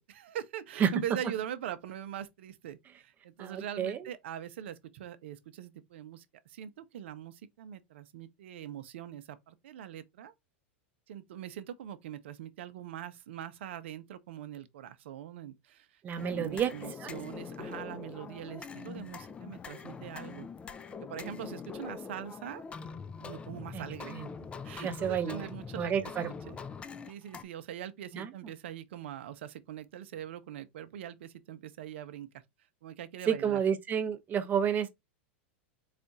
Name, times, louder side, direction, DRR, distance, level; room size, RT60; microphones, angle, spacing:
voice 1, 0.1-10.3 11.1-20.5 21.0-22.6 23.2-24.2 24.6-26.1 26.5-26.6 27.1-32.3 32.8-33.6, right 10 dB, 75° right, 0.6 m, -42 dB
voice 2, 3.4-4.0 16.0-16.7 17.0-17.1 23.7-23.8 24.1-24.3 24.8-25.5 25.8-26.5 28.1-28.3 33.3-34.9, right 8 dB, 25° right, 0.7 m, -30 dB
sound 1, 16.2-27.4, left 5 dB, 15° left, 0.4 m, -43 dB
4.2 x 2.4 x 3.9 m
hypercardioid pair, 120°, 6 cm